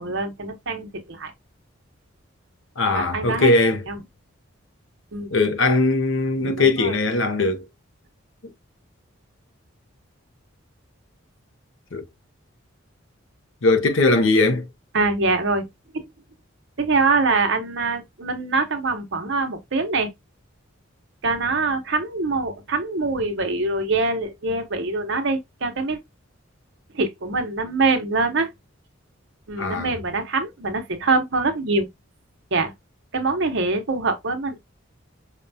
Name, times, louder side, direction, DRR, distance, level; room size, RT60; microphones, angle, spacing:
voice 1, 0.0-1.3 2.9-3.5 3.9-4.0 5.1-5.3 6.4-7.0 14.9-15.7 15.9-16.0 16.8-20.1 21.2-26.0 26.9-28.5 29.5-31.9 32.5-32.7 33.1-34.6, right 3 dB, 60° right, 0.9 m, -24 dB
voice 2, 2.8-3.8 5.3-7.6 11.9-12.0 13.6-14.7 29.6-29.9, left 2 dB, 65° left, 0.7 m, -20 dB
5.1 x 2.3 x 2.6 m
head